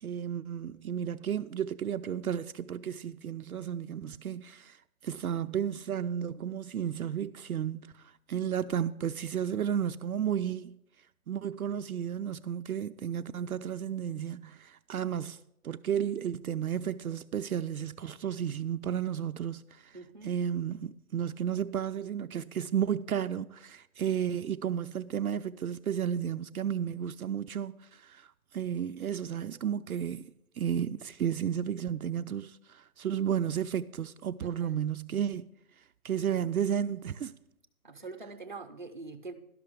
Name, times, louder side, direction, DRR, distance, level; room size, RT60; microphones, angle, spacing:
voice 1, 0.0-4.8 5.0-8.0 8.3-10.8 11.3-15.4 15.6-20.0 20.2-35.5 36.0-37.4, right 9 dB, 70° right, 0.5 m, -33 dB
voice 2, 19.9-20.3 34.4-34.8 37.8-39.3, right 3 dB, 35° right, 0.6 m, -44 dB
11.5 x 5.9 x 6.7 m
hypercardioid pair, 175°, 45 cm